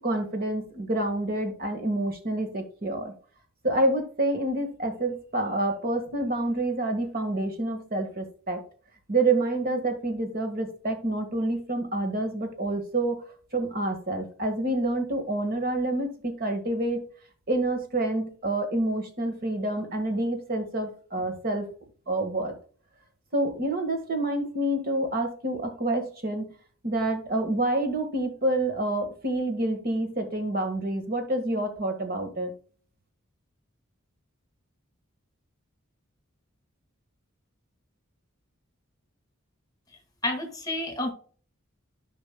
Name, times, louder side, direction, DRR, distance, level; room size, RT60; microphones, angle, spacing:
voice 1, 0.0-3.1 3.6-8.6 9.1-13.2 13.5-17.0 17.5-21.7 22.1-22.5 23.3-26.5 26.8-32.5, right 2 dB, 45° right, 6 dB, 1.5 m, -28 dB
voice 2, 40.2-41.1, left 2 dB, 20° left, 4 dB, 1.7 m, -29 dB
14.0 x 5.3 x 2.2 m, 0.43 s
head